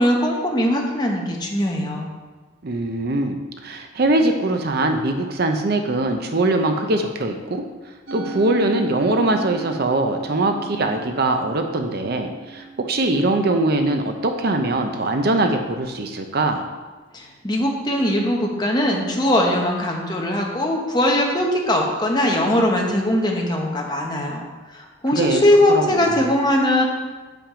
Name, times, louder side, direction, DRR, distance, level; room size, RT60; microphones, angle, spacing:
voice 1, 0.0-2.1 17.1-26.8, left 1 dB, 20° left, 0 dB, 1.0 m, -20 dB
voice 2, 2.6-16.7 25.0-25.4 25.7-26.3, right 2 dB, 50° right, 5 dB, 0.6 m, -22 dB
Musical instrument, 8.1-14.5, right 5 dB, 85° right, 1.1 m, -37 dB
7.2 x 5.8 x 5.0 m, 1.3 s
head